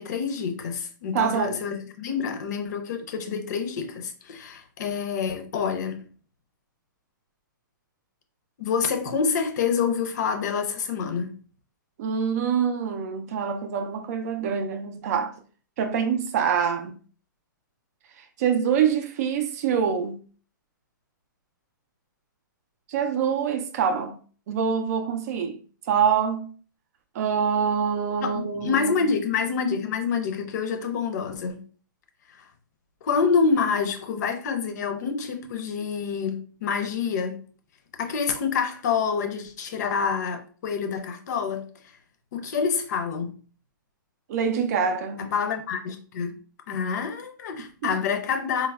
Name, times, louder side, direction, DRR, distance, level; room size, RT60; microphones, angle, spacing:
voice 1, 0.0-6.1 8.6-11.3 28.2-31.6 32.4-32.5 33.0-37.4 38.0-41.7 42.3-43.3 45.2-46.4 46.7-48.7, left 6 dB, 55° left, 0.5 m, -27 dB
voice 2, 1.1-1.7 12.0-15.3 15.8-16.9 18.4-20.2 22.9-24.2 24.5-25.6 25.9-26.5 27.1-28.9 44.3-45.4 47.8-48.0, right 7 dB, 50° right, 0.4 m, -25 dB
3.3 x 2.0 x 2.3 m
hypercardioid pair, 140°, 11 cm